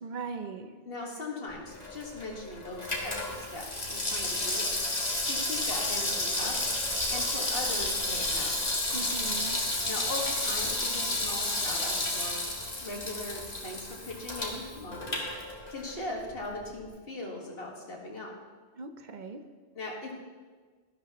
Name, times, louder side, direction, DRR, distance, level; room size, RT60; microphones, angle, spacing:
voice 1, 0.0-0.7 8.9-9.6 18.8-19.4, right 4 dB, 50° right, 8 dB, 0.7 m, -39 dB
voice 2, 0.9-4.6 5.2-6.6 7.1-8.8 9.8-12.4 12.8-15.2 15.7-18.3 19.7-20.1, left 2 dB, 55° left, -1 dB, 1.9 m, -39 dB
Water tap faucet / Sink (filling or washing), 1.7-16.0 16.3-16.4, left 2 dB, 35° left, 1.7 m, -31 dB
13.0 x 11.5 x 2.9 m, 1.5 s
omnidirectional pair, 1.1 m